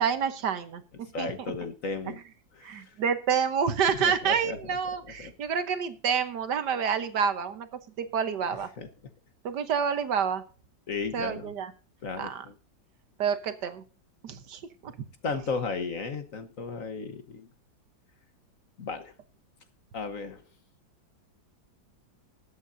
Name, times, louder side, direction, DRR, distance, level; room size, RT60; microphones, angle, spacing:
voice 1, 0.0-1.5 2.1-2.2 2.6-7.7 8.0-8.7 9.4-10.4 11.1-11.7 12.2-12.4 13.2-13.8 14.2-14.9, right 7 dB, 65° right, 11 dB, 1.6 m, -28 dB
voice 2, 1.1-2.2 2.6-2.9 4.0-4.6 5.2-5.3 8.8-8.9 10.9-11.5 12.0-12.5 15.2-17.5 18.8-19.1 19.9-20.4, left 4 dB, 50° left, 9 dB, 1.4 m, -34 dB
20.5 x 8.4 x 2.6 m, 0.38 s
omnidirectional pair, 2.1 m